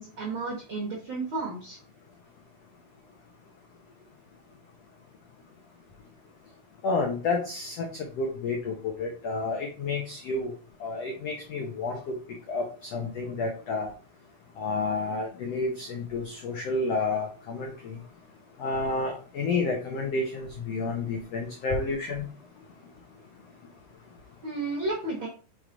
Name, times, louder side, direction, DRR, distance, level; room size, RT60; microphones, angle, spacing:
voice 1, 0.0-1.8 24.4-25.3, right 3 dB, 70° right, -2 dB, 1.2 m, -32 dB
voice 2, 6.8-7.9 8.2-10.5 10.8-12.1 12.5-12.6 12.9-13.9 14.6-18.0 18.6-22.3, left 3 dB, 80° left, 1 dB, 1.4 m, -30 dB
4.9 x 4.9 x 3.9 m, 0.38 s
omnidirectional pair, 4.3 m